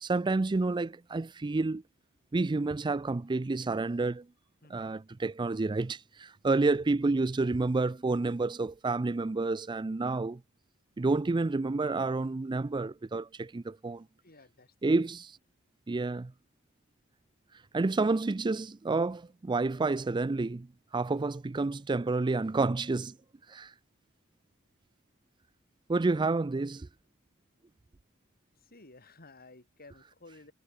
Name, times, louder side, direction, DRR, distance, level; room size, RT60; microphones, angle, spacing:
voice 1, 0.0-1.8 2.3-4.2 4.7-10.4 11.0-14.0 14.8-15.3 15.9-16.3 17.7-20.7 20.9-23.1 23.5-23.7 25.9-26.9, right 3 dB, 20° right, 0.4 m, -29 dB
voice 2, 4.6-5.0 14.2-15.1 28.6-30.5, left 2 dB, 45° left, 4.9 m, -55 dB
head